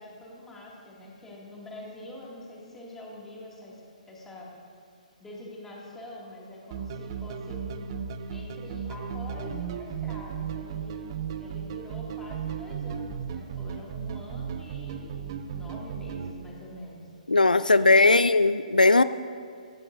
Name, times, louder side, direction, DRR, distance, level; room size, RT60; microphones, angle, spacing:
voice 1, 0.0-3.8 4.1-4.5 5.2-8.0 8.3-11.1 11.4-17.0 17.7-18.1, left 1 dB, 10° left, -4 dB, 2.5 m, -44 dB
sound 1, 6.7-16.3, right 7 dB, 35° right, 0.6 m, -35 dB
voice 2, 17.3-19.0, left 3 dB, 80° left, 14 dB, 0.3 m, -19 dB
15.5 x 15.0 x 2.7 m, 2.3 s
figure-of-eight pair, 130°, 4 cm